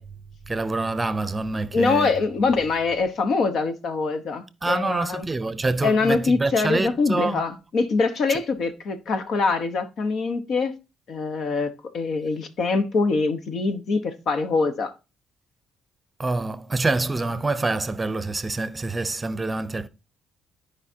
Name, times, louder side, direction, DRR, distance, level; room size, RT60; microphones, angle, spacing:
voice 1, 0.5-2.1 4.6-7.4 8.3-8.4 16.2-19.9, right 3 dB, 20° right, 0.7 m, -26 dB
voice 2, 1.7-5.3 5.8-10.7 11.1-14.9, left 4 dB, 65° left, 1.1 m, -24 dB
12.5 x 4.9 x 2.8 m
cardioid pair, 90°, 0 cm